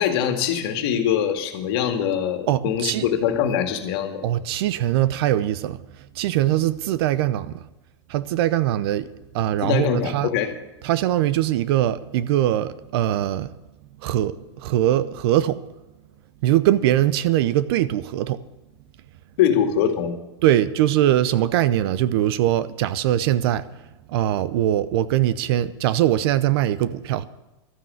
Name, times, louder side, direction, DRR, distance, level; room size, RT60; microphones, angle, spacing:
voice 1, 0.0-4.2 9.6-10.5 19.4-20.1, left 8 dB, 60° left, 2.1 m, -23 dB
voice 2, 2.5-3.1 4.2-5.8 6.1-7.6 8.1-9.1 9.3-10.3 10.8-13.5 14.0-15.6 16.4-18.4 20.4-23.7 24.1-27.3, right 12 dB, 60° right, 0.8 m, -21 dB
12.5 x 9.1 x 7.8 m
supercardioid pair, 135°, 15 cm